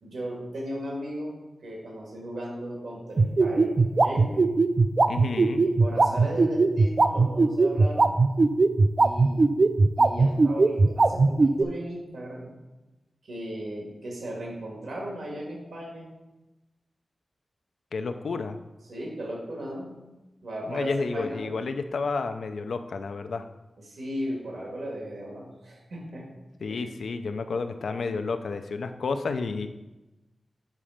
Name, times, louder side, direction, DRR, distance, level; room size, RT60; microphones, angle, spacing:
voice 1, 0.0-3.7 4.0-4.5 5.6-8.2 9.0-9.5 10.0-12.5 13.2-16.1 18.9-20.0 20.4-21.7 23.8-26.3 26.7-26.8, right 1 dB, 85° right, -2 dB, 2.0 m, -36 dB
sound 1, 3.2-11.6, right 3 dB, 40° right, 0.3 m, -19 dB
voice 2, 5.1-5.6 17.9-18.6 20.7-23.4 26.6-29.7, left 4 dB, 85° left, 8 dB, 0.5 m, -31 dB
7.4 x 4.2 x 5.0 m, 1.1 s
wide cardioid pair, 145°, 0 cm